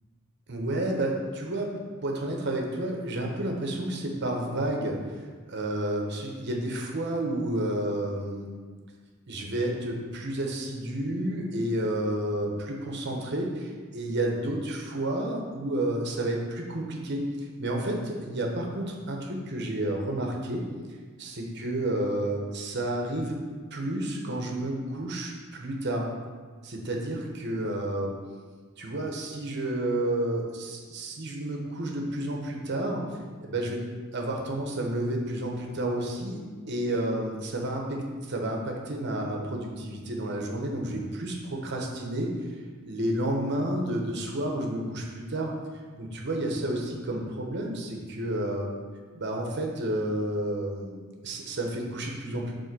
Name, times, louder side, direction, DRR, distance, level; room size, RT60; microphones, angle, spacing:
voice 1, 0.5-1.7 2.0-5.0 5.5-8.5 9.3-17.2 17.6-20.6 21.2-23.4 23.7-26.1 26.6-28.1 28.8-33.0 33.4-33.8 34.1-36.4 36.7-42.3 42.8-45.5 46.0-48.7 49.1-52.5, right 1 dB, 55° right, 0 dB, 1.1 m, -30 dB
5.5 x 4.4 x 6.1 m, 1.5 s
head